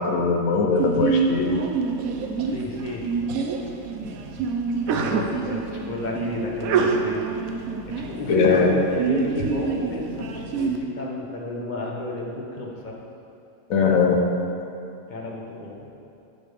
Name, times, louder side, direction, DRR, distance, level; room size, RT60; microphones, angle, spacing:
voice 1, 0.0-1.6 8.3-8.7 13.7-14.2, left 4 dB, 75° left, 2 dB, 1.2 m, -20 dB
Sneeze, 0.8-10.8, right 5 dB, 80° right, 1.0 m, -26 dB
voice 2, 2.4-3.1 4.8-7.2 7.9-13.0 15.1-15.9, left 2 dB, 40° left, -2 dB, 0.9 m, -32 dB
8.1 x 6.3 x 3.4 m, 2.7 s
omnidirectional pair, 1.5 m